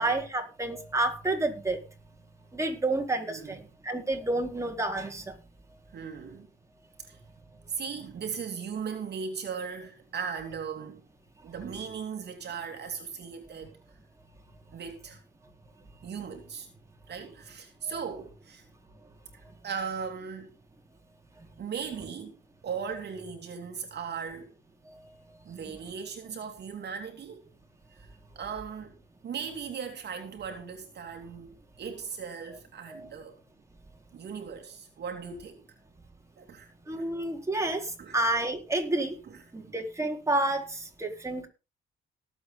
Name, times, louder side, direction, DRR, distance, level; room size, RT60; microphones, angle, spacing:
voice 1, 0.0-1.8 2.5-3.6 3.8-5.3 17.9-18.0 32.9-33.1 36.9-39.2 39.5-41.5, right 2 dB, 15° right, 4.2 m, -29 dB
voice 2, 3.3-3.6 5.9-6.5 7.0-7.2 7.7-11.0 11.4-13.8 14.7-15.2 16.0-16.7 17.1-18.6 19.6-20.5 21.6-24.5 25.5-27.5 28.0-28.1 28.3-29.0 29.2-33.4 34.1-35.6 36.4-36.7 37.0-37.1 38.0-38.2 39.2-39.7, right 6 dB, 55° right, 2.8 m, -38 dB
18.5 x 8.1 x 4.1 m
cardioid pair, 90°, 20 cm